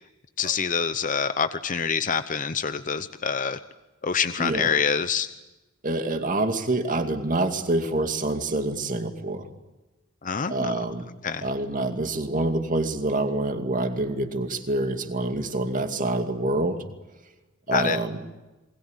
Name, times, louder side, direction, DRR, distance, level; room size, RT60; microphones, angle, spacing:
voice 1, 0.4-3.6 4.0-5.3 10.2-10.7 11.2-11.5 17.7-18.0, left 6 dB, 40° left, 11 dB, 0.8 m, -26 dB
voice 2, 4.4-4.7 5.8-9.5 10.5-11.1 11.4-16.8 17.7-18.2, right 2 dB, 40° right, 6 dB, 2.4 m, -26 dB
27.5 x 21.0 x 8.2 m, 1.1 s
head